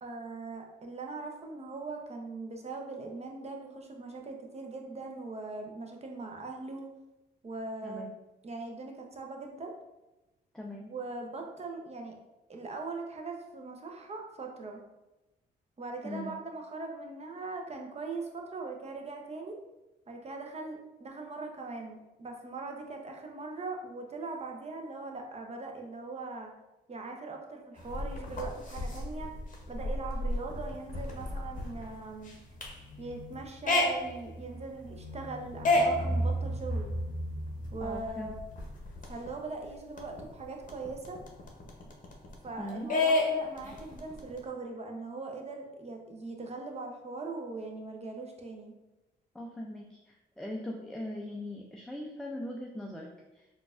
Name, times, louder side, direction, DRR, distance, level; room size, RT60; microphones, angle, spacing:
voice 1, 0.0-6.9 7.4-8.1 8.4-9.7 10.9-12.1 12.5-14.8 15.8-19.6 20.1-26.5 26.9-29.3 29.7-32.3 33.0-36.9 37.7-38.4 39.1-41.2 42.4-48.7, right 3 dB, 30° right, 2 dB, 0.7 m, -40 dB
voice 2, 10.5-10.9 16.0-16.3 37.8-38.3 42.6-42.9 49.3-53.6, left 1 dB, 5° left, 0 dB, 0.4 m, -40 dB
sound 1, 27.8-39.3 39.6-39.7 40.0-42.5 42.9-44.4, left 1 dB, 40° left, 0.8 m, -32 dB
3.8 x 2.4 x 2.5 m, 1.0 s
supercardioid pair, 55°, 20 cm